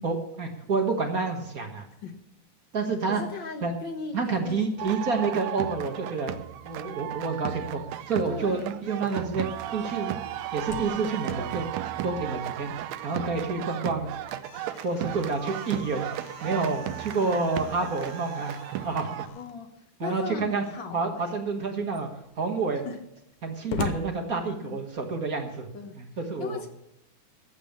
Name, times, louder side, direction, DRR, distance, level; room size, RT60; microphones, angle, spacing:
voice 1, 0.0-1.9 2.7-3.2 3.6-3.7 4.1-6.4 6.6-9.5 9.7-10.2 10.5-11.7 12.0-12.7 13.0-14.1 14.8-16.1 16.4-18.5 18.8-19.2 20.0-20.6 20.9-22.1 22.4-22.8 23.4-25.7 26.0-26.6, right 4 dB, 40° right, 3 dB, 1.3 m, -29 dB
voice 2, 3.1-5.0 5.2-5.4 8.3-8.8 19.3-21.4 22.8-23.0 24.6-24.8 25.7-26.0 26.4-26.7, left 4 dB, 50° left, 6 dB, 1.6 m, -38 dB
sound 1, 4.8-19.3, right 12 dB, 75° right, 1.8 m, -35 dB
Slam, 10.6-13.1 13.4-13.5 14.0-19.6 20.5-21.0 21.6-21.7 21.9-25.0, left 8 dB, 85° left, 2.4 m, -42 dB
14.0 x 8.5 x 7.2 m, 0.82 s
omnidirectional pair, 3.5 m